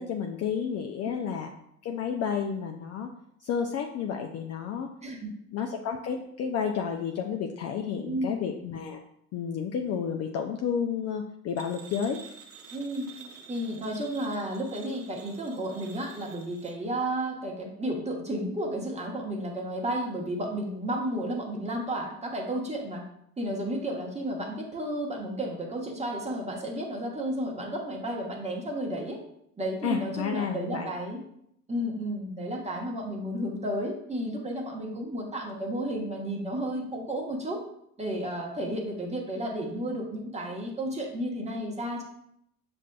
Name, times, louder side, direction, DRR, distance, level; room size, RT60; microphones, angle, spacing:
voice 1, 0.0-1.5 1.8-3.1 3.4-4.9 5.5-9.0 9.3-12.2 29.8-30.9, left 7 dB, 35° left, 3 dB, 0.4 m, -31 dB
voice 2, 8.0-8.4 12.7-13.1 13.5-23.0 23.4-29.2 29.6-31.2 31.7-37.6 38.0-42.0, right 1 dB, 15° right, 0 dB, 1.0 m, -32 dB
sound 1, 11.6-16.7, right 6 dB, 35° right, 0.7 m, -49 dB
7.1 x 2.6 x 2.3 m, 0.73 s
hypercardioid pair, 65°, 44 cm